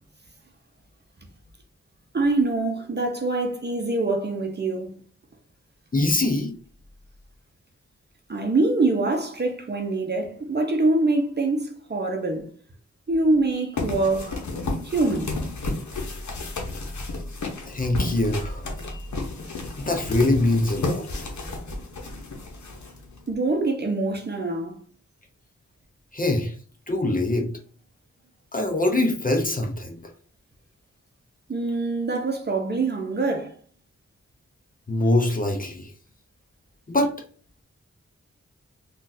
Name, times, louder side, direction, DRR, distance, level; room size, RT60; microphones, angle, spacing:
voice 1, 2.1-4.9 8.3-12.5 13.1-14.4 14.8-15.3 18.9-19.0 23.3-24.8 31.5-33.5, right 2 dB, 35° right, 0.7 m, -24 dB
voice 2, 5.9-6.5 17.7-18.6 19.9-21.1 26.1-26.5 26.9-27.5 28.5-30.0 34.9-35.9 36.9-37.1, left 2 dB, 30° left, 0.7 m, -23 dB
sound 1, 13.8-23.3, left 2 dB, 75° left, 0.8 m, -32 dB
3.7 x 2.4 x 2.6 m
wide cardioid pair, 80°, 29 cm